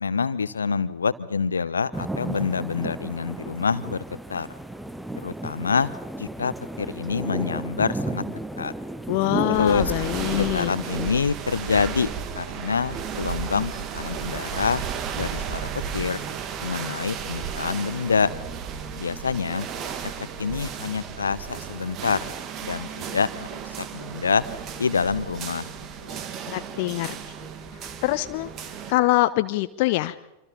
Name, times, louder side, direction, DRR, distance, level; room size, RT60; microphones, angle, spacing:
voice 1, 0.0-4.5 5.2-5.9 6.2-8.7 9.5-9.9 10.3-14.8 15.1-16.3 16.6-18.3 19.0-19.7 20.0-20.1 20.4-22.2 22.6-24.4 24.8-25.7 26.0-26.3, left 5 dB, 75° left, 16 dB, 0.9 m, -26 dB
sound 1, 1.9-11.2, right 1 dB, 5° right, 1.1 m, -34 dB
voice 2, 9.1-10.7 26.5-27.1 28.0-28.5 28.9-30.1, left 18 dB, 50° left, 12 dB, 0.7 m, -24 dB
sound 2, 9.5-28.9, right 7 dB, 35° right, 2.0 m, -34 dB
27.0 x 25.5 x 4.2 m, 0.98 s
figure-of-eight pair, 90°, 0 cm